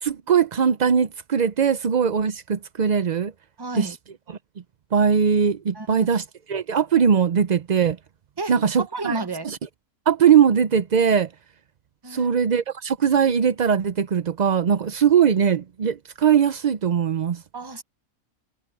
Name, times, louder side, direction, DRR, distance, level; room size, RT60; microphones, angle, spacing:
voice 1, 0.0-3.3 3.8-3.9 4.9-6.2 6.5-8.0 8.5-9.2 10.1-11.3 12.1-17.4, right 7 dB, 90° right, 0.3 m, -20 dB
voice 2, 3.6-4.0 5.7-6.1 8.4-9.5 12.0-12.3 17.5-17.8, right 3 dB, 20° right, 0.7 m, -32 dB
omnidirectional pair, 1.6 m